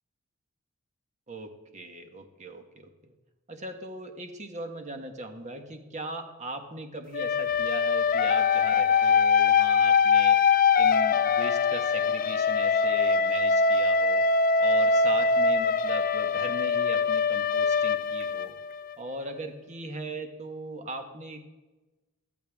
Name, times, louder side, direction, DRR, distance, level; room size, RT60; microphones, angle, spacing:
voice 1, 1.3-3.1 3.5-10.4 10.7-14.3 14.6-18.6 19.0-21.5, right 2 dB, 35° right, 5 dB, 1.4 m, -39 dB
sound 1, 7.1-18.9, left 5 dB, 40° left, 0.4 m, -23 dB
14.5 x 14.0 x 3.6 m, 1.1 s
head